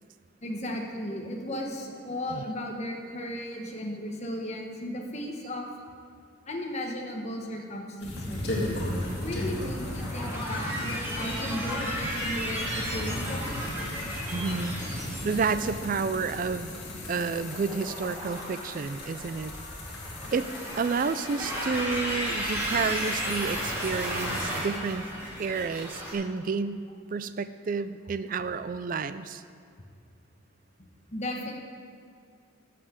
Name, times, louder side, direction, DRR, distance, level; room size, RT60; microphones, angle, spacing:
voice 1, 0.4-5.7 6.5-8.4 9.1-13.5 31.1-31.5, left 1 dB, 30° left, 1 dB, 1.3 m, -35 dB
sound 1, 8.0-21.7, left 2 dB, 50° left, 2.0 m, -39 dB
sound 2, 8.0-26.1, equal, 10° right, 3.1 m, -34 dB
voice 2, 14.3-16.7 17.1-19.5 20.3-25.0 25.4-26.8 27.1-29.4, right 5 dB, 40° right, 13 dB, 0.3 m, -30 dB
12.5 x 5.8 x 8.0 m, 2.3 s
head